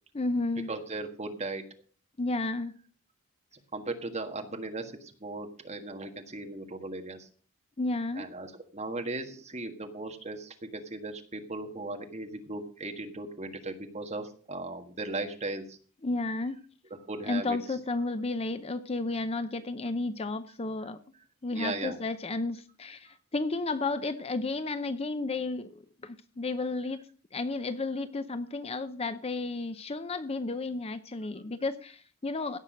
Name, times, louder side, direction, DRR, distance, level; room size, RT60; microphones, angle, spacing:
voice 1, 0.1-0.7 2.2-2.7 7.8-8.3 16.0-16.6 17.3-21.0 21.4-27.0 27.3-32.6, left 3 dB, 25° left, 12 dB, 0.6 m, -32 dB
voice 2, 0.7-1.6 3.5-7.3 8.1-15.8 17.1-17.8 21.5-22.0, right 2 dB, 30° right, 5 dB, 1.6 m, -37 dB
16.5 x 6.1 x 6.2 m, 0.43 s
head